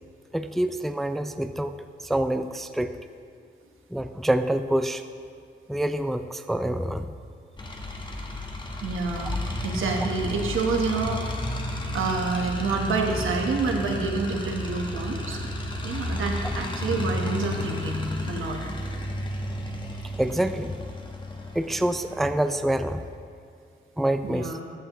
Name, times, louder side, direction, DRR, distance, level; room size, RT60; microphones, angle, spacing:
voice 1, 0.3-2.9 3.9-5.0 5.7-7.1 20.2-20.7 21.5-23.0 24.0-24.6, right 1 dB, ahead, 9 dB, 0.3 m, -26 dB
sound 1, 7.6-23.2, left 1 dB, 25° left, 1.2 m, -32 dB
voice 2, 8.8-11.2 11.9-15.4 15.8-18.6 24.2-24.6, right 4 dB, 85° right, 2 dB, 1.1 m, -28 dB
13.5 x 6.7 x 3.0 m, 2.3 s
cardioid pair, 75°, 20 cm